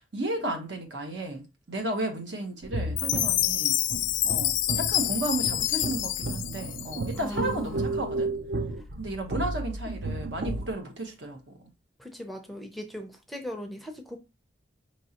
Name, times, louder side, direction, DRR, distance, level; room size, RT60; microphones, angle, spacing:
voice 1, 0.0-3.8 4.2-8.3 9.0-11.7, right 1 dB, 75° right, 1.1 m, -33 dB
sound 1, 2.6-10.7, right 2 dB, 55° right, 0.5 m, -33 dB
Chime, 3.0-7.3, left 13 dB, 85° left, 0.4 m, -27 dB
voice 2, 7.2-8.2 12.0-14.2, left 1 dB, ahead, 0.5 m, -39 dB
5.3 x 3.1 x 2.8 m
head